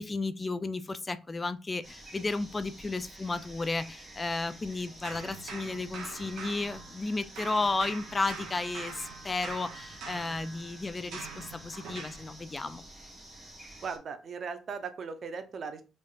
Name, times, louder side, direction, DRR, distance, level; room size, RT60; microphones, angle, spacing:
voice 1, 0.0-12.8, left 3 dB, 25° left, 13 dB, 0.4 m, -33 dB
sound 1, 1.8-14.0, right 1 dB, 20° right, 1.7 m, -50 dB
sound 2, 5.0-7.1 7.4-12.3, right 5 dB, 85° right, 1.0 m, -44 dB
voice 2, 13.8-15.8, right 5 dB, 50° right, 9 dB, 0.8 m, -38 dB
5.2 x 3.5 x 2.6 m, 0.31 s
cardioid pair, 90°, 0 cm